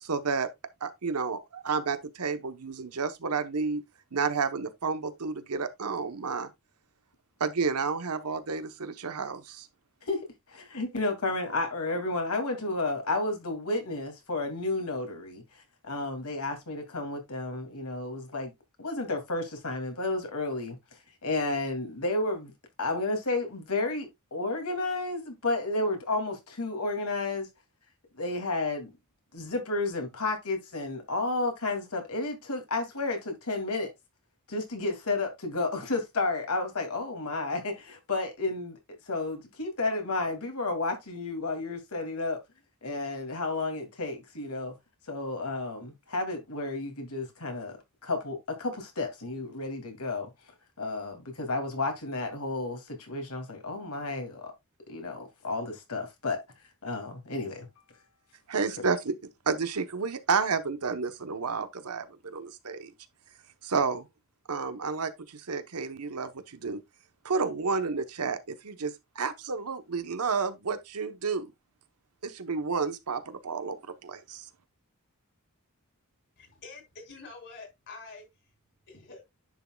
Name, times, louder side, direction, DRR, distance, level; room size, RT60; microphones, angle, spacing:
voice 1, 0.0-0.5 0.8-3.8 4.1-6.5 7.4-9.7 58.5-59.1 59.5-62.9 63.6-64.1 64.5-66.8 67.2-71.5 72.2-74.4, right 5 dB, 90° right, 1.0 m, -31 dB
voice 2, 10.5-15.4 15.8-18.5 18.8-20.8 21.2-22.5 22.8-27.5 28.1-28.9 29.3-33.9 34.5-38.8 39.1-42.4 42.8-44.7 45.1-47.8 48.0-50.3 50.8-54.5 54.9-56.4 56.8-57.7, left 2 dB, 80° left, 2.5 m, -32 dB
voice 3, 76.4-78.3 78.9-79.2, left 3 dB, 55° left, 3.7 m, -46 dB
10.5 x 6.2 x 2.3 m
head